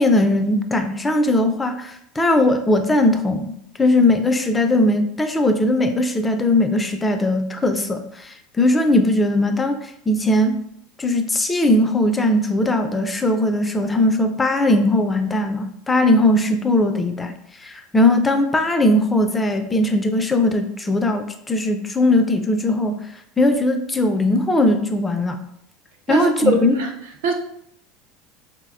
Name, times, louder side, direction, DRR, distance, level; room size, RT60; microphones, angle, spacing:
voice 1, 0.0-3.5 3.8-10.7 11.0-17.3 17.6-23.1 23.4-25.4 26.1-26.8, left 1 dB, 15° left, 0.3 m, -19 dB
voice 2, 26.1-26.9 27.2-27.3, right 6 dB, 70° right, 0.5 m, -23 dB
3.8 x 2.1 x 2.3 m
hypercardioid pair, 80°, 0 cm